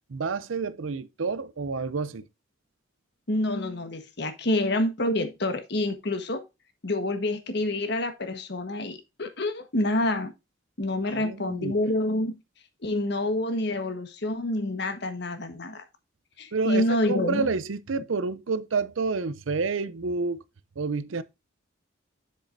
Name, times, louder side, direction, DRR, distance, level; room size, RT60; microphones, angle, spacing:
voice 1, 0.1-2.2 11.1-11.8 16.5-20.4 20.8-21.2, right 4 dB, 80° right, 0.6 m, -29 dB
voice 2, 3.3-6.4 6.8-10.3 10.8-12.4 12.8-15.8 16.4-17.5, left 1 dB, 55° left, 1.4 m, -27 dB
7.5 x 7.2 x 2.6 m
head